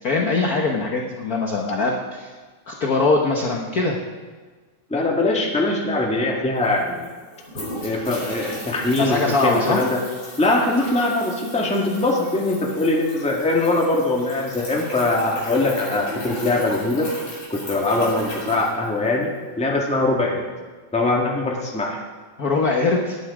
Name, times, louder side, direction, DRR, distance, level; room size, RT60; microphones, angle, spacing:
voice 1, 0.0-2.3 2.7-4.0 8.9-9.8 22.4-23.2, left 3 dB, 60° left, 0 dB, 0.9 m, -22 dB
voice 2, 4.9-7.1 7.8-10.0 10.4-17.1 17.5-20.5 20.9-22.0, left 2 dB, 5° left, -1 dB, 1.1 m, -22 dB
sound 1, 6.6-19.4, left 1 dB, 45° left, 5.7 m, -36 dB
19.0 x 9.9 x 4.9 m, 1.4 s
omnidirectional pair, 3.4 m